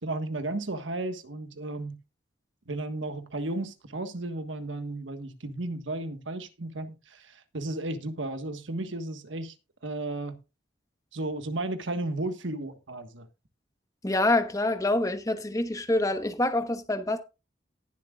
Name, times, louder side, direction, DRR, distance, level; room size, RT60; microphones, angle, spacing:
voice 1, 0.0-2.0 2.7-9.5 9.8-10.4 11.1-13.3, right 2 dB, 85° right, 1.5 m, -34 dB
voice 2, 14.0-17.2, left 2 dB, 20° left, 1.1 m, -26 dB
19.0 x 7.5 x 2.4 m
head